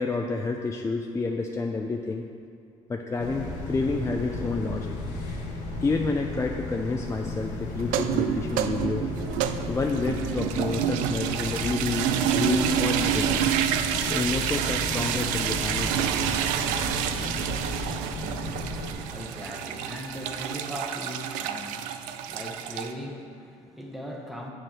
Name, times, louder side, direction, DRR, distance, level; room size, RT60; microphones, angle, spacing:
voice 1, 0.0-2.2 2.9-5.0 5.8-9.1 9.7-13.5 14.1-16.5, left 3 dB, 20° left, 2 dB, 0.5 m, -29 dB
sound 1, 3.2-18.9, left 2 dB, 80° left, 1.3 m, -34 dB
sound 2, 7.8-22.9, right 9 dB, 80° right, 0.4 m, -28 dB
voice 2, 18.5-24.5, equal, ahead, 0 dB, 1.2 m, -39 dB
7.3 x 4.9 x 6.2 m, 2.4 s
supercardioid pair, 70°, 13 cm